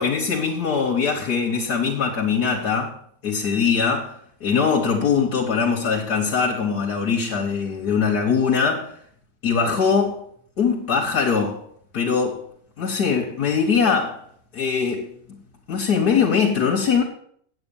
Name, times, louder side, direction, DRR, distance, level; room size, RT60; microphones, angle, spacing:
voice 1, 0.0-2.9 3.2-4.1 4.4-8.9 9.4-10.2 10.6-11.6 11.9-12.4 12.8-14.2 14.5-15.1 15.7-17.0, left 6 dB, 70° left, 1.9 m, -21 dB
8.7 x 8.3 x 7.1 m
omnidirectional pair, 1.8 m